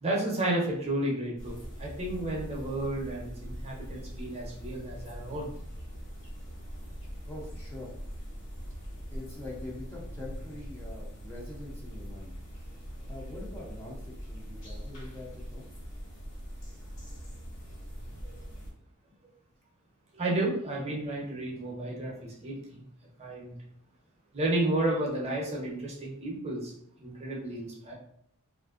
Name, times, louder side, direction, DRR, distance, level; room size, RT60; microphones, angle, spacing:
voice 1, 0.0-5.5 18.2-18.5 20.1-22.8 23.2-23.6 24.3-26.7 27.0-27.9, right 1 dB, 30° right, -2 dB, 0.7 m, -32 dB
sound 1, 1.4-18.7, equal, 60° left, 1.3 m, -42 dB
voice 2, 7.2-7.9 9.1-12.3 13.1-15.6, left 2 dB, 10° left, -5 dB, 0.5 m, -44 dB
3.1 x 2.5 x 2.4 m, 0.71 s
head